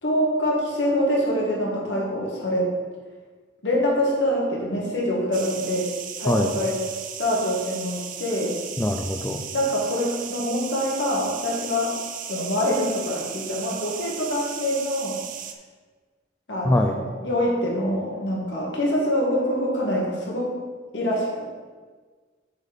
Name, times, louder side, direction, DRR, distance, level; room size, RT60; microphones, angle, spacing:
voice 1, 0.0-2.7 3.6-5.9 6.2-6.8 7.2-8.6 9.5-12.0 12.3-15.2 16.5-20.5 20.9-21.6, equal, 70° left, -3 dB, 2.0 m, -25 dB
sound 1, 5.3-15.5, right 8 dB, 45° right, 0.5 m, -36 dB
voice 2, 8.8-9.5 16.6-17.0, left 1 dB, 10° left, 3 dB, 0.3 m, -22 dB
8.0 x 4.5 x 5.2 m, 1.5 s
head